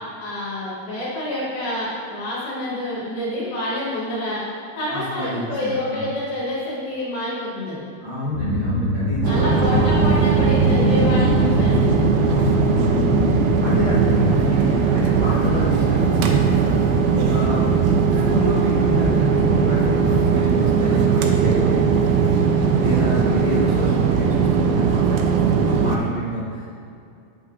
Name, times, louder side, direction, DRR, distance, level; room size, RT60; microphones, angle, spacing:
voice 1, 0.2-4.4 4.8-7.9 9.3-12.0 22.8-23.2, left 1 dB, 75° left, -10 dB, 3.3 m, -28 dB
voice 2, 4.9-6.1 8.0-9.8 12.2-13.1 13.6-26.7, left 1 dB, 60° right, -9 dB, 1.3 m, -29 dB
sound 1, 8.3-14.5, left 1 dB, 60° left, 2.1 m, -24 dB
sound 2, 9.2-26.0, right 5 dB, 85° right, 2.5 m, -19 dB
8.4 x 7.6 x 2.5 m, 2.5 s
omnidirectional pair, 4.4 m